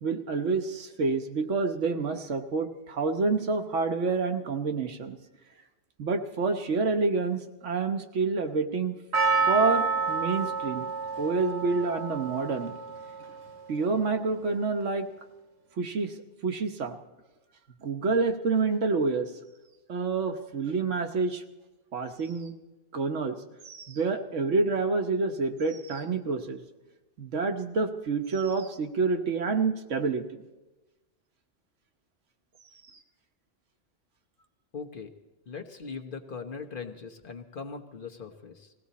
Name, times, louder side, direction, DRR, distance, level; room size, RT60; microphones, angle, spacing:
voice 1, 0.0-5.2 6.0-8.9 9.5-10.9 11.2-12.7 13.7-15.1 15.8-16.2 16.4-17.0 17.8-19.3 19.9-21.4 21.9-22.5 22.9-23.4 23.6-26.6 27.2-30.4, right 4 dB, 90° right, 6 dB, 1.3 m, -28 dB
Percussion, 9.1-13.5 13.7-13.8, right 4 dB, 65° right, 1.3 m, -29 dB
voice 2, 34.7-35.1 35.5-38.7, left 5 dB, 50° left, 3 dB, 1.1 m, -40 dB
20.5 x 16.0 x 4.1 m, 1.1 s
omnidirectional pair, 1.2 m